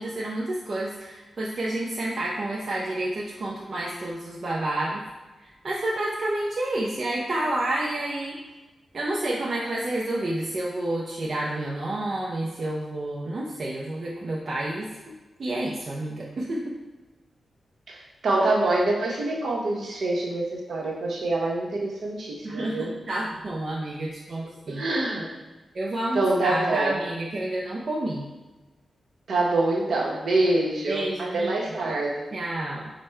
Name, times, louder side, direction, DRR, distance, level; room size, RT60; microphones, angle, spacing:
voice 1, 0.0-5.0 5.4-8.4 8.9-16.7 22.4-24.9 25.7-28.3 30.9-31.5 31.8-32.0 32.3-32.9, right 1 dB, 45° right, -5 dB, 0.5 m, -29 dB
voice 2, 17.9-22.9 24.7-25.3 26.1-27.0 29.3-32.2, right 2 dB, 65° right, -3 dB, 0.9 m, -25 dB
5.0 x 2.1 x 4.3 m, 1.2 s
wide cardioid pair, 155°, 0 cm